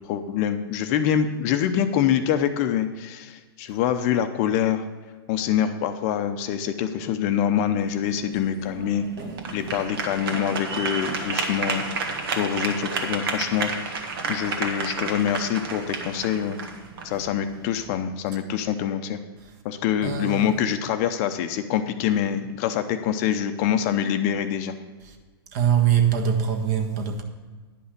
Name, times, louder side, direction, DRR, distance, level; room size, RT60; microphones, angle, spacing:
voice 1, 0.1-4.8 5.3-9.1 9.5-16.6 17.0-19.2 19.6-24.7, left 9 dB, 40° left, 0.6 m, -25 dB
sound 1, 7.8-17.9, right 4 dB, 65° right, 1.7 m, -31 dB
voice 2, 20.0-20.5 25.5-27.2, right 8 dB, 45° right, 1.4 m, -23 dB
10.5 x 5.6 x 6.6 m
hypercardioid pair, 145°, 13 cm